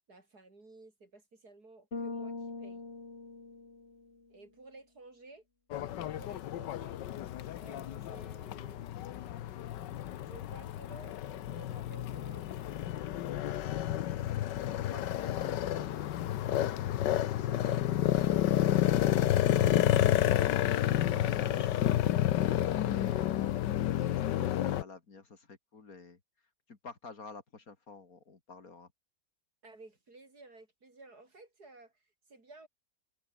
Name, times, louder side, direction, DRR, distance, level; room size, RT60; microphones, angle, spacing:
voice 1, 0.1-2.8 4.3-5.4 5.9-7.0 7.6-8.9 10.2-12.7 29.6-32.7, right 2 dB, 60° right, 5.3 m, -54 dB
Bass guitar, 1.9-4.2, left 3 dB, 35° left, 2.8 m, -42 dB
sound 1, 5.7-24.8, left 12 dB, 80° left, 1.5 m, -30 dB
voice 2, 14.9-19.0 19.3-21.9 22.3-23.4 24.1-26.2 26.7-28.9, left 4 dB, 50° left, 2.8 m, -51 dB
omnidirectional pair, 1.9 m